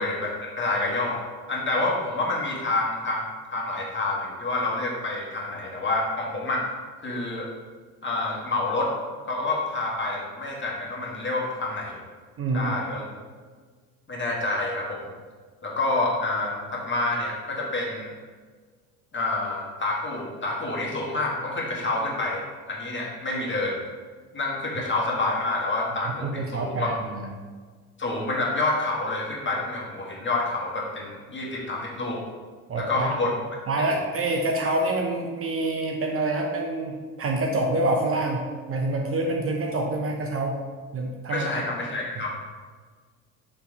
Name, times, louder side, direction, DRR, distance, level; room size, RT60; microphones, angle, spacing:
voice 1, 0.0-3.2 3.5-6.7 7.0-7.5 8.0-8.9 9.3-12.0 12.5-13.0 14.1-15.1 15.6-18.1 19.1-23.8 24.3-26.9 28.0-32.2 32.8-33.3 41.3-42.3, left 2 dB, 25° left, -2 dB, 1.7 m, -28 dB
voice 2, 12.4-12.7 26.0-27.3 32.7-33.1 33.7-40.6 40.9-41.5, right 2 dB, 30° right, 1 dB, 0.7 m, -27 dB
6.8 x 3.2 x 4.6 m, 1.5 s
figure-of-eight pair, 55°, 42 cm